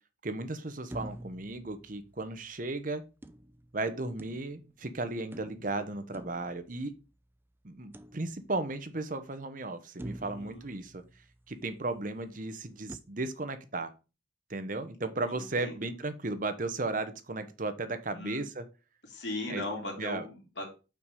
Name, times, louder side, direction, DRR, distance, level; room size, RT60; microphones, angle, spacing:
voice 1, 0.2-3.0 3.7-6.9 7.6-11.0 11.5-13.9 14.5-18.6 19.5-19.6 20.0-20.3, right 2 dB, 45° right, 10 dB, 0.9 m, -35 dB
sound 1, 0.9-2.5 3.2-4.8 5.3-7.2 7.9-8.8 9.3-9.4 10.0-11.7 12.9-13.0, right 1 dB, 10° right, 0.4 m, -47 dB
voice 2, 10.2-10.7 15.3-15.8 18.1-18.4 19.0-20.7, left 2 dB, 70° left, 0 dB, 3.1 m, -38 dB
5.9 x 4.9 x 5.3 m, 0.31 s
head